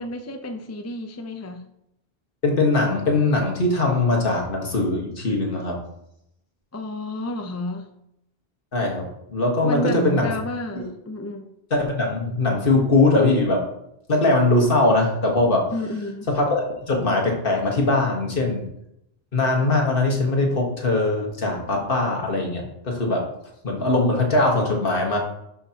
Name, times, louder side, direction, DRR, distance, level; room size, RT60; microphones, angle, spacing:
voice 1, 0.0-1.6 6.7-7.9 9.6-11.5 15.7-16.3, left 1 dB, 20° left, 5 dB, 0.6 m, -31 dB
voice 2, 2.4-5.8 8.7-10.3 10.8-10.9 11.7-13.6 14.1-15.7 16.3-18.7 19.3-23.2 23.6-25.2, left 2 dB, 60° left, 0 dB, 1.7 m, -21 dB
12.0 x 5.6 x 2.9 m, 0.81 s
omnidirectional pair, 1.1 m